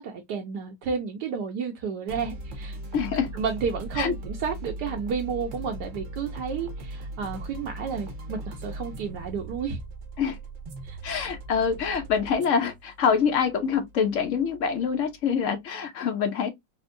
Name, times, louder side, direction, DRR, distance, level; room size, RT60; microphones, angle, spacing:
voice 1, 0.0-2.8 3.3-9.8 10.8-11.2, right 6 dB, 75° right, 1.2 m, -31 dB
sound 1, 2.1-15.5, right 2 dB, 60° right, 0.9 m, -39 dB
voice 2, 2.9-3.3 4.0-4.1 10.2-10.4 11.0-16.5, left 6 dB, 65° left, 0.8 m, -25 dB
4.3 x 2.0 x 2.4 m
omnidirectional pair, 1.9 m